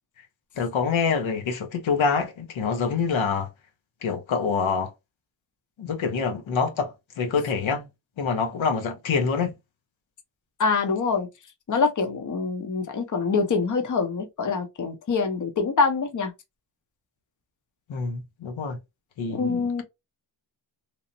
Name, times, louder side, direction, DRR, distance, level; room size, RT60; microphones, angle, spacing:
voice 1, 0.6-3.5 4.0-4.9 5.8-7.9 8.2-9.5 17.9-18.8 19.2-19.8, left 5 dB, 75° left, 0.7 m, -26 dB
voice 2, 10.6-11.3 11.7-16.3 19.3-19.8, left 4 dB, 40° left, 0.7 m, -25 dB
3.0 x 2.0 x 2.5 m
cardioid pair, 60°, 47 cm